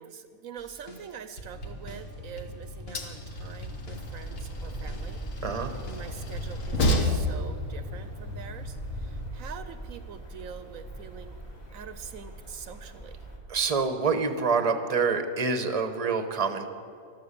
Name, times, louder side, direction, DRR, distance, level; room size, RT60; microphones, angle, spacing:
voice 1, 0.0-5.2 5.8-11.4 11.7-13.2, right 7 dB, 75° right, 10 dB, 1.1 m, -44 dB
sound 1, 0.6-7.4, right 1 dB, 45° left, 1.6 m, -45 dB
Train, 1.5-9.3, left 1 dB, 65° left, 1.8 m, -32 dB
sound 2, 3.9-13.4, right 2 dB, 30° left, 2.0 m, -42 dB
voice 2, 13.5-16.7, right 4 dB, 30° right, 8 dB, 1.0 m, -26 dB
14.5 x 12.5 x 6.8 m, 2.4 s
omnidirectional pair, 1.5 m